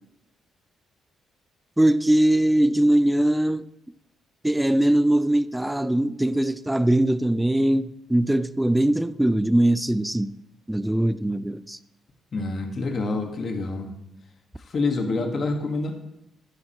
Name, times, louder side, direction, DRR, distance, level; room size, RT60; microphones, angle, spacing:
voice 1, 1.8-3.6 4.4-10.3 10.7-11.8, right 1 dB, 5° right, 0.4 m, -21 dB
voice 2, 12.3-13.9 14.6-15.9, left 3 dB, 45° left, 1.6 m, -27 dB
11.5 x 9.5 x 3.0 m
cardioid pair, 90°, 0 cm